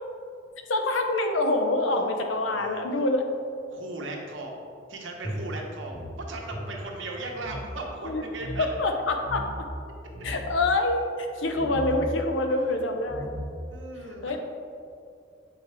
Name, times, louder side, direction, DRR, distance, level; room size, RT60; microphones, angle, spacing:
voice 1, 0.7-3.2 8.0-8.2 8.6-9.7 10.2-13.2 14.2-14.4, left 2 dB, 90° left, 4 dB, 0.7 m, -26 dB
voice 2, 2.4-2.8 3.7-4.6 4.9-8.7 12.5-12.9 13.7-14.4, right 2 dB, 85° right, 0 dB, 1.0 m, -38 dB
sound 1, 5.2-7.7 7.9-8.0 8.3-8.6 9.2-9.7 10.0-10.6 11.5-11.9 12.7-12.8 13.0-13.7, equal, 20° left, 1.3 m, -37 dB
7.6 x 4.7 x 3.3 m, 2.4 s
head